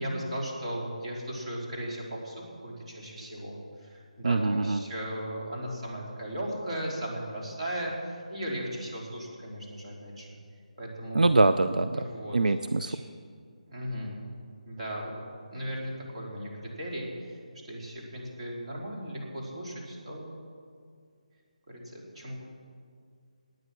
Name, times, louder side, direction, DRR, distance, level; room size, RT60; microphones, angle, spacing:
voice 1, 0.0-2.4 2.6-10.4 10.8-11.4 11.9-12.4 12.8-13.0 13.7-14.1 14.7-15.1 15.5-17.4 17.7-20.3 21.7-22.4, equal, 50° right, -3 dB, 3.9 m, -37 dB
voice 2, 4.2-4.8 11.1-12.0 12.3-13.0, right 2 dB, 90° right, 10 dB, 0.5 m, -23 dB
17.0 x 9.4 x 6.0 m, 2.1 s
figure-of-eight pair, 165°, 4 cm